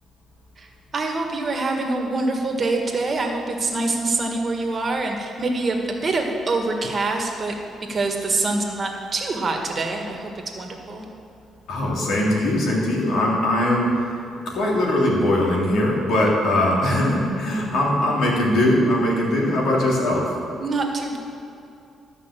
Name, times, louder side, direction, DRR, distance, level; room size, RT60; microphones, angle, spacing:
voice 1, 0.9-7.5 7.9-11.0 16.6-16.7 20.6-21.2, right 3 dB, 40° right, 2 dB, 1.6 m, -25 dB
voice 2, 11.7-13.9 14.4-20.3, left 1 dB, 75° left, -3 dB, 3.0 m, -21 dB
13.0 x 5.7 x 7.6 m, 2.6 s
cardioid pair, 90°, 0 cm